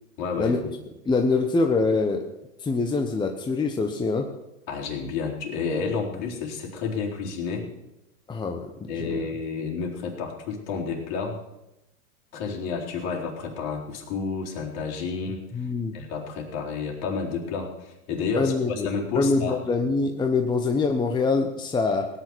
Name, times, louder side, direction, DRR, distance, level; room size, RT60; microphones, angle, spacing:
voice 1, 0.2-0.7 4.7-7.7 8.9-11.4 12.3-19.6, left 5 dB, 50° left, -1 dB, 4.1 m, -30 dB
voice 2, 1.0-2.3 2.6-4.2 8.3-9.2 15.5-15.9 18.4-22.1, left 3 dB, 10° left, 4 dB, 1.0 m, -24 dB
17.5 x 9.7 x 6.2 m, 0.92 s
hypercardioid pair, 120°, 40 cm